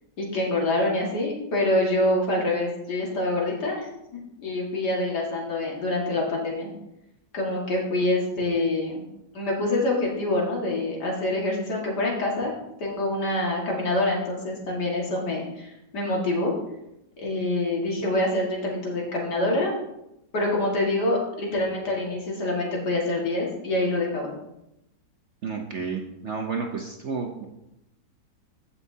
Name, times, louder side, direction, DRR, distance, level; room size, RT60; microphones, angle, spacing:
voice 1, 0.2-3.9 4.4-6.7 7.3-9.0 9.3-12.5 12.8-16.5 17.2-19.7 20.3-24.3, left 2 dB, 65° left, -2 dB, 2.5 m, -26 dB
voice 2, 25.4-27.5, right 5 dB, 55° right, 1 dB, 0.8 m, -31 dB
15.5 x 5.8 x 2.7 m, 0.87 s
omnidirectional pair, 1.9 m